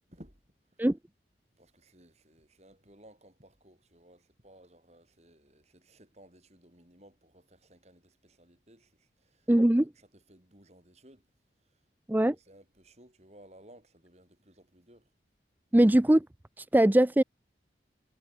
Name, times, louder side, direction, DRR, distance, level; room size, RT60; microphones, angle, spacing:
voice 1, 0.1-0.4 0.8-0.9 1.6-9.5 9.8-11.3 11.6-11.8 12.1-15.1, right 1 dB, 35° right, 6.9 m, -58 dB
voice 2, 9.5-9.9 12.1-12.4 15.7-16.2 16.6-17.2, right 1 dB, 10° right, 0.4 m, -21 dB
head